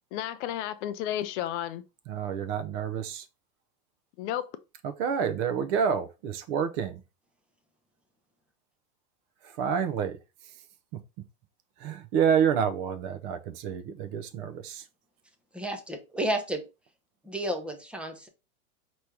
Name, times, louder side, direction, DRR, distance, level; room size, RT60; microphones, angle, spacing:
voice 1, 0.1-1.8 4.2-4.6, left 11 dB, 50° left, 0.6 m, -32 dB
voice 2, 2.1-3.3 4.8-7.0 9.4-10.6 10.9-11.0 11.8-14.9, right 7 dB, 40° right, 0.7 m, -29 dB
voice 3, 15.5-16.6 17.2-18.3, right 1 dB, 5° right, 0.5 m, -31 dB
4.6 x 3.0 x 3.3 m
hypercardioid pair, 120°, 45 cm